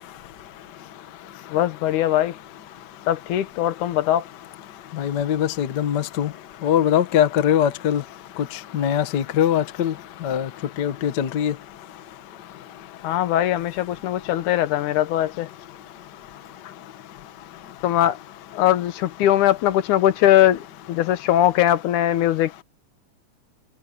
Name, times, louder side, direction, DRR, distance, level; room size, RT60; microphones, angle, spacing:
voice 1, 1.5-2.4 3.1-4.3 13.0-15.5 17.8-18.2 18.5-22.6, left 12 dB, 80° left, 2.5 m, -20 dB
voice 2, 5.0-6.3 6.6-8.0 8.7-9.9 10.2-10.5 10.8-11.5, left 9 dB, 50° left, 1.3 m, -21 dB
omnidirectional pair, 3.5 m